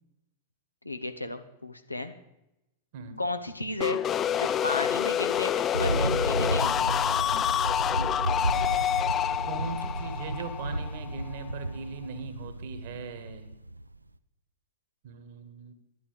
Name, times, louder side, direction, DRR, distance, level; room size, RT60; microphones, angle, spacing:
voice 1, 0.8-2.1 3.2-4.0 4.4-6.9, left 2 dB, 85° left, 8 dB, 0.8 m, -34 dB
sound 1, 3.8-11.5, left 10 dB, 25° left, 0.3 m, -28 dB
Thunder, 5.7-14.0, right 1 dB, 85° right, 0.4 m, -33 dB
voice 2, 9.4-13.5 15.0-15.7, right 5 dB, 50° right, 9 dB, 1.5 m, -40 dB
10.5 x 9.9 x 5.1 m, 0.89 s
figure-of-eight pair, 95°, 0 cm